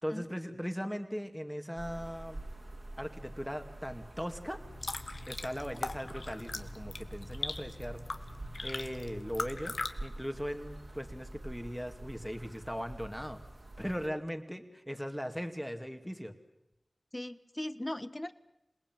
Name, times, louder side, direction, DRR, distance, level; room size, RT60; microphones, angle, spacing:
voice 1, 0.0-2.4 3.0-4.6 5.3-8.1 8.4-9.7 10.0-13.4 13.8-16.3, equal, ahead, 6 dB, 2.3 m, -39 dB
sound 1, 1.8-14.1, right 1 dB, 60° right, 3.8 m, -47 dB
sound 2, 4.6-9.9, left 3 dB, 75° left, 1.6 m, -40 dB
voice 2, 17.1-18.3, left 1 dB, 25° left, 13 dB, 1.3 m, -39 dB
27.5 x 19.5 x 9.3 m, 0.86 s
wide cardioid pair, 65°, 0 cm